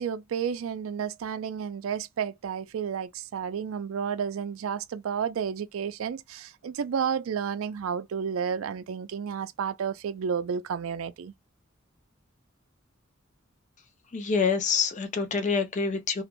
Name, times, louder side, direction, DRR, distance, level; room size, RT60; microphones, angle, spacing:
voice 1, 0.0-11.3, right 7 dB, 85° right, 0.4 m, -31 dB
voice 2, 14.1-16.2, left 5 dB, 35° left, 0.5 m, -26 dB
2.4 x 2.1 x 2.9 m
head